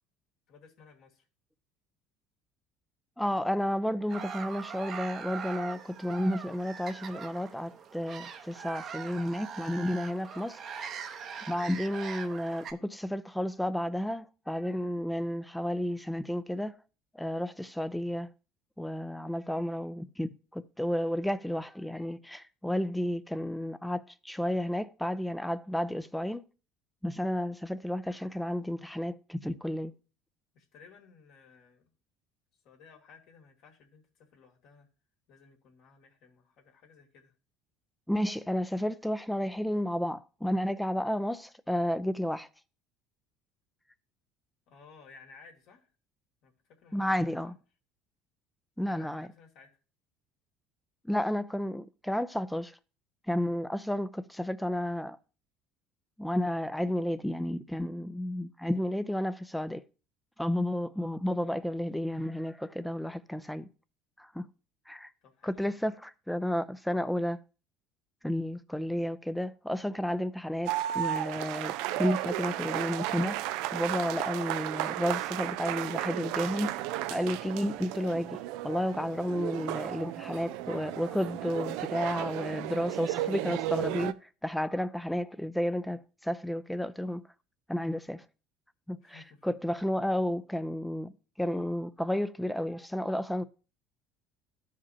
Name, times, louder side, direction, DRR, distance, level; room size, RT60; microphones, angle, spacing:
voice 1, 0.5-1.3 30.5-31.9 32.6-34.9 35.3-37.3 44.7-45.9 46.4-47.5 48.8-49.7 65.2-65.9 79.7-79.9 89.0-89.5, left 5 dB, 65° left, 2.5 m, -57 dB
voice 2, 3.2-10.6 11.5-16.8 17.1-18.3 18.8-26.4 27.0-29.9 38.1-42.5 46.9-47.5 48.8-49.3 51.0-52.8 53.3-55.2 56.2-59.8 60.4-63.7 64.2-64.5 64.9-65.1 65.4-67.4 68.2-73.5 73.7-87.3 87.7-88.2 88.9-91.1 91.4-93.5, equal, 5° left, 0.5 m, -32 dB
sound 1, 4.1-12.7, right 6 dB, 50° right, 0.9 m, -42 dB
sound 2, 70.7-84.1, right 14 dB, 75° right, 0.4 m, -34 dB
14.0 x 5.0 x 2.8 m
supercardioid pair, 90°, 0 cm